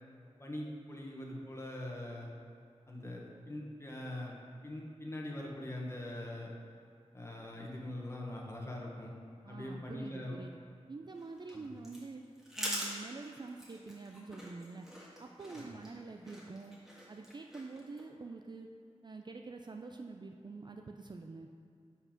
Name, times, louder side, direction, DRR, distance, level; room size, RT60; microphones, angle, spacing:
voice 1, 0.4-2.3 2.9-4.4 4.6-6.5 7.1-9.1 9.5-10.3 11.5-11.7 15.5-15.7, left 1 dB, 25° left, -2 dB, 1.2 m, -42 dB
voice 2, 9.4-10.6 10.9-12.2 12.6-14.9 15.2-16.8 17.1-18.7 19.0-21.5, right 3 dB, 40° right, 3 dB, 0.4 m, -46 dB
sound 1, 11.1-18.0, equal, 5° right, 1.8 m, -45 dB
5.5 x 4.6 x 5.9 m, 2.3 s
wide cardioid pair, 65°, 11 cm